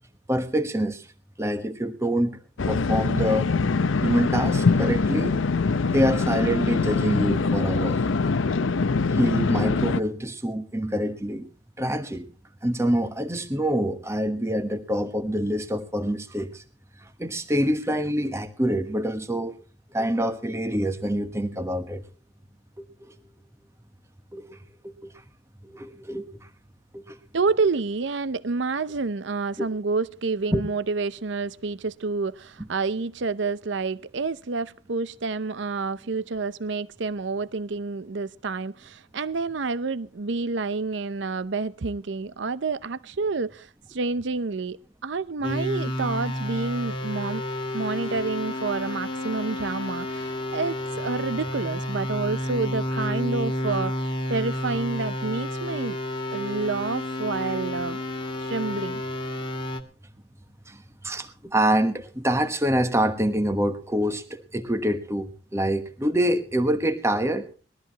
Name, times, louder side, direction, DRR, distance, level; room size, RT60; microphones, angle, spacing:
voice 1, 0.3-1.1 1.4-2.4 2.7-3.5 4.0-5.4 5.9-8.0 9.1-11.5 11.8-12.2 12.6-16.6 17.0-19.6 19.9-22.0 22.8-23.2 24.3-24.6 24.8-25.1 25.6-26.5 26.9-27.2 29.6-29.7 30.5-30.6 60.7-67.5, equal, 15° right, 1.2 m, -26 dB
sound 1, 2.6-10.0, left 4 dB, 80° left, 0.6 m, -23 dB
voice 2, 27.3-44.8 45.0-47.4 47.7-56.0 56.3-58.0 58.4-59.0, right 4 dB, 65° right, 0.6 m, -29 dB
sound 2, 45.4-59.8, left 1 dB, 25° left, 1.7 m, -30 dB
21.0 x 13.5 x 2.9 m
head